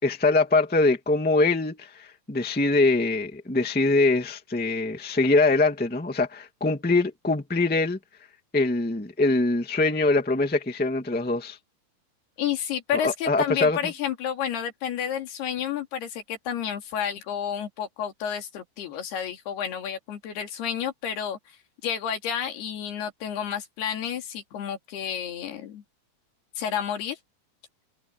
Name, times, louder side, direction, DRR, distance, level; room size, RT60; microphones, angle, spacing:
voice 1, 0.0-8.0 8.5-11.6 12.9-13.8, left 3 dB, 5° left, 1.0 m, -23 dB
voice 2, 12.4-21.4 21.8-25.8 26.6-27.2, left 9 dB, 80° left, 4.7 m, -30 dB
omnidirectional pair, 4.5 m